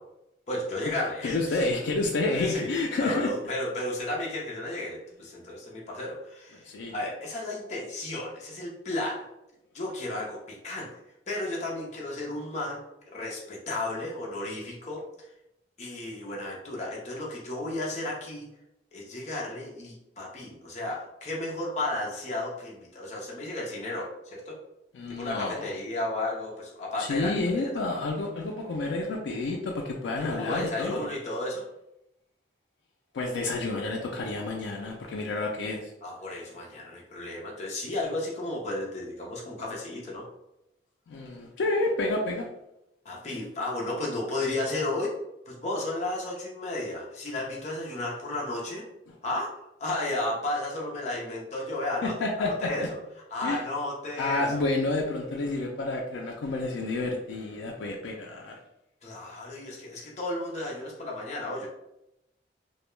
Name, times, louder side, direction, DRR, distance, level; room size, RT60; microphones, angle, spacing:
voice 1, 0.5-1.6 2.3-2.7 3.0-6.6 6.9-9.2 9.7-10.9 11.3-12.8 13.1-15.0 15.8-18.5 18.9-24.5 25.2-28.0 30.2-31.6 36.0-40.2 43.0-45.1 45.5-48.8 49.2-49.5 49.8-52.1 52.4-53.0 53.3-54.6 59.0-61.7, left 2 dB, 40° left, -3 dB, 0.6 m, -33 dB
voice 2, 1.2-3.3 6.7-6.9 24.9-25.7 27.0-31.1 33.1-35.9 41.1-42.5 52.0-52.7 53.4-53.6 54.2-58.6, left 2 dB, 90° left, 0 dB, 0.4 m, -29 dB
2.2 x 2.1 x 3.0 m, 0.87 s
head